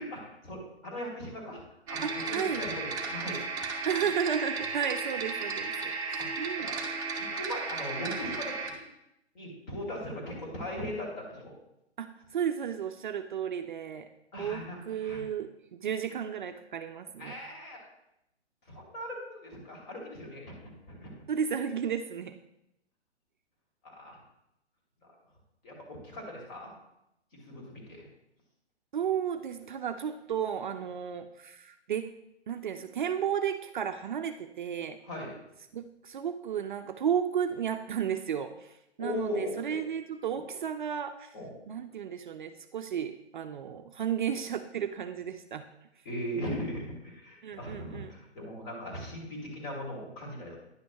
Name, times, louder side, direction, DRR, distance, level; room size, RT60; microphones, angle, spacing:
voice 1, 0.0-1.6 1.9-3.4 3.7-3.9 6.2-6.3 6.6-6.7 7.2-8.8 9.3-11.5 14.3-14.8 15.0-15.2 17.2-17.8 18.7-20.6 20.9-21.2 23.8-24.2 25.6-26.7 27.4-28.1 35.1-35.3 39.0-39.8 40.3-40.4 41.3-41.5 46.0-50.6, left 1 dB, 40° left, -1 dB, 2.7 m, -39 dB
sound 1, 1.9-8.7, right 4 dB, 10° right, 0.7 m, -34 dB
voice 2, 2.0-2.6 3.8-6.7 12.0-14.1 14.4-17.4 21.3-22.4 28.9-32.1 32.5-35.0 35.7-41.3 41.7-45.7 47.4-48.1, right 8 dB, 45° right, 8 dB, 0.4 m, -33 dB
10.0 x 6.0 x 3.1 m, 0.84 s
figure-of-eight pair, 135°, 34 cm